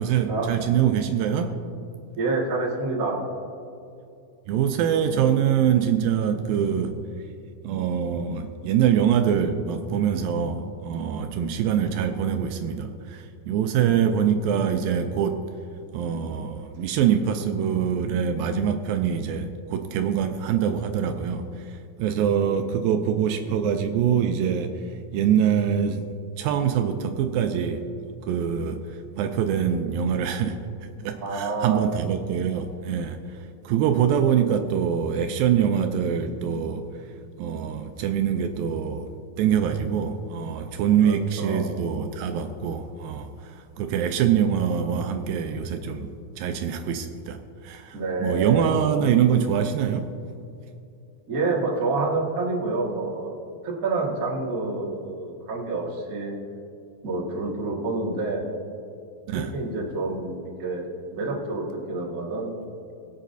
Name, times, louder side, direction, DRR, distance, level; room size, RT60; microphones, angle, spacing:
voice 1, 0.0-1.5 4.5-7.0 7.6-15.4 15.9-24.8 25.1-26.1 26.4-27.8 28.2-36.8 37.4-39.1 39.4-46.1 46.4-50.0 59.3-59.5, right 8 dB, 80° right, 6 dB, 2.2 m, -24 dB
voice 2, 2.2-3.2 31.2-31.8 41.0-41.6 47.9-48.7 51.3-53.3 53.6-56.3 57.0-58.4 59.3-60.8 61.1-62.6, right 3 dB, 40° right, -4 dB, 1.2 m, -28 dB
21.0 x 8.3 x 2.7 m, 2.6 s
omnidirectional pair, 4.3 m